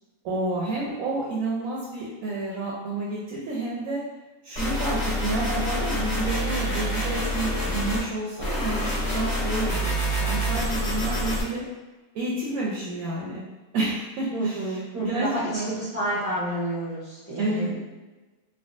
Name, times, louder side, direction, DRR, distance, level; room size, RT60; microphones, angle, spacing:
voice 1, 0.2-4.0 4.4-11.6 12.1-13.4 13.7-15.7 17.4-17.7, right 2 dB, 75° right, -5 dB, 1.0 m, -30 dB
sound 1, 4.6-8.0 8.4-11.4, equal, 35° left, 1.0 m, -27 dB
voice 2, 14.3-17.8, right 1 dB, 40° right, -10 dB, 0.5 m, -29 dB
3.4 x 2.2 x 2.4 m, 1.2 s
omnidirectional pair, 1.6 m